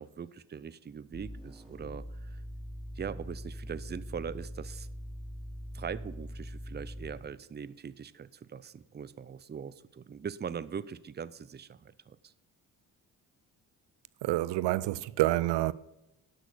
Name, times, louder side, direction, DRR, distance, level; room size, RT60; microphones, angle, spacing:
voice 1, 0.0-2.4 3.0-4.9 5.7-12.3, right 7 dB, 25° right, 0.5 m, -41 dB
sound 1, 1.1-7.3, equal, ahead, 3.7 m, -42 dB
voice 2, 14.2-15.7, right 17 dB, 80° right, 0.5 m, -28 dB
11.5 x 6.4 x 6.7 m
supercardioid pair, 60°, 42 cm